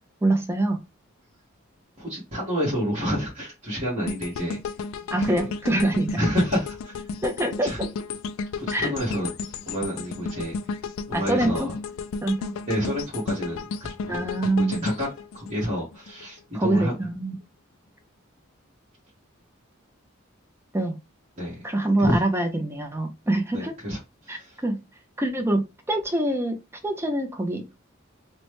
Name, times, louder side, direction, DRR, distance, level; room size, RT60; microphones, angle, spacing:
voice 1, 0.2-0.8 5.1-6.2 7.2-7.9 8.7-8.9 11.1-11.7 12.2-12.6 14.1-14.8 16.5-17.3 20.7-21.0 21.6-23.7 24.3-24.8 25.2-26.6 26.8-27.8, right 1 dB, 10° right, 0.5 m, -25 dB
voice 2, 2.0-4.6 5.2-5.5 6.2-7.0 7.6-7.8 8.6-9.3 9.7-10.7 11.1-11.7 12.7-13.7 14.0-15.1 15.3-16.9 21.4-21.6 22.0-22.2 23.5-24.6, equal, 35° right, 1.1 m, -29 dB
sound 1, 4.1-16.2 16.7-16.8, left 5 dB, 90° left, 0.3 m, -33 dB
3.0 x 2.1 x 3.0 m
head